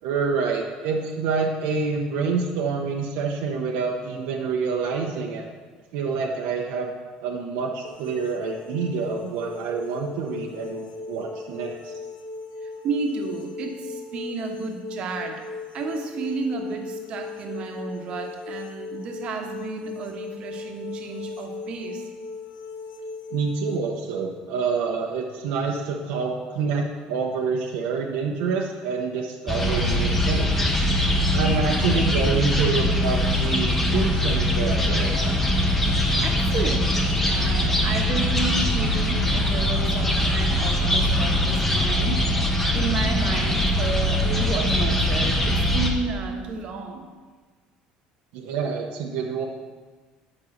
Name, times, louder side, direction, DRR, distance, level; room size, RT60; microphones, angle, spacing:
voice 1, 0.0-5.5 5.9-6.9 7.2-11.9 23.3-30.7 31.3-35.5 48.3-49.4, right 5 dB, 85° right, 0 dB, 1.0 m, -27 dB
sound 1, 7.8-23.8, left 4 dB, 75° left, 0.9 m, -37 dB
voice 2, 12.6-15.4 15.7-22.1 36.2-47.1, right 4 dB, 45° right, 3 dB, 1.2 m, -32 dB
sound 2, 29.5-45.9, left 1 dB, 10° left, 1.0 m, -22 dB
8.8 x 5.5 x 6.6 m, 1.4 s
cardioid pair, 150°, 3 cm